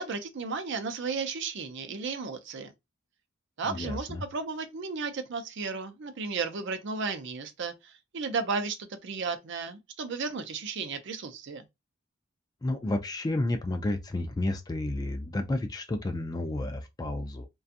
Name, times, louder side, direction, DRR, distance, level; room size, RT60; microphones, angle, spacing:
voice 1, 0.0-2.7 3.6-11.6, right 4 dB, 60° right, 0.5 m, -34 dB
voice 2, 3.7-4.2 12.6-17.5, left 2 dB, 20° left, 0.3 m, -31 dB
2.7 x 2.3 x 2.5 m
head